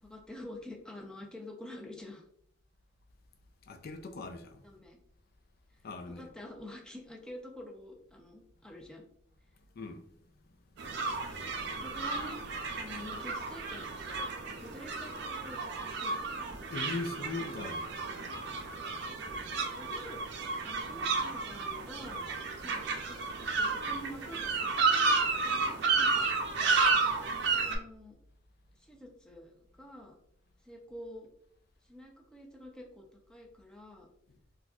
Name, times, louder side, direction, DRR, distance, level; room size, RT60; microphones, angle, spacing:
voice 1, 0.0-2.2 4.6-5.0 6.1-9.0 11.6-12.4 12.7-16.5 19.2-19.4 19.8-20.2 20.6-22.2 22.6-26.2 26.5-26.8 27.6-28.2 28.8-30.2 30.6-31.3 31.9-33.0 33.3-34.1, left 1 dB, 5° left, 0.6 m, -48 dB
voice 2, 3.7-4.6 5.8-6.3 9.7-10.1 16.7-17.9, left 3 dB, 55° left, 0.4 m, -39 dB
sound 1, 10.8-27.8, right 4 dB, 65° right, 0.5 m, -32 dB
4.1 x 2.3 x 2.3 m
head